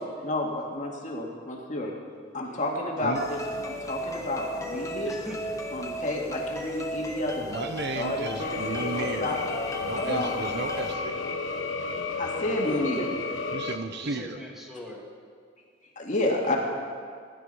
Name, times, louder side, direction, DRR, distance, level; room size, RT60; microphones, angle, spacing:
voice 1, 0.2-1.9 2.3-3.4 3.7-5.1 5.7-7.7 7.9-9.4 10.0-10.3 12.1-13.1 16.0-16.6, left 1 dB, 40° left, -1 dB, 2.1 m, -30 dB
sound 1, 3.1-10.9, equal, 15° left, 1.2 m, -35 dB
voice 2, 5.0-5.6 14.0-15.0 16.5-16.6, equal, ahead, -2 dB, 2.0 m, -41 dB
voice 3, 7.5-9.4 9.8-11.3 13.5-14.4, right 3 dB, 60° right, 8 dB, 0.8 m, -34 dB
sound 2, 8.4-13.8, left 4 dB, 80° left, 1.0 m, -32 dB
17.0 x 11.0 x 5.6 m, 2.1 s
head